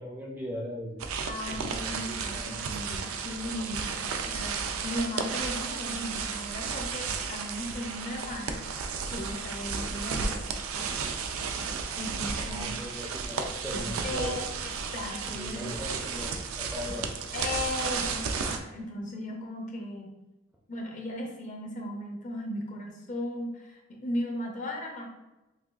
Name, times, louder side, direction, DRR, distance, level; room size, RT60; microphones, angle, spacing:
voice 1, 0.0-2.7 12.5-14.4 15.3-17.0, equal, 10° right, -1 dB, 0.4 m, -39 dB
sound 1, 1.0-18.6, right 5 dB, 90° right, 0.4 m, -33 dB
voice 2, 1.3-8.6 9.1-10.4 10.7-11.0 12.0-12.8 13.7-15.7 17.3-20.1 20.7-25.1, left 1 dB, 35° left, 0 dB, 0.7 m, -37 dB
5.8 x 2.3 x 2.4 m, 1.0 s
head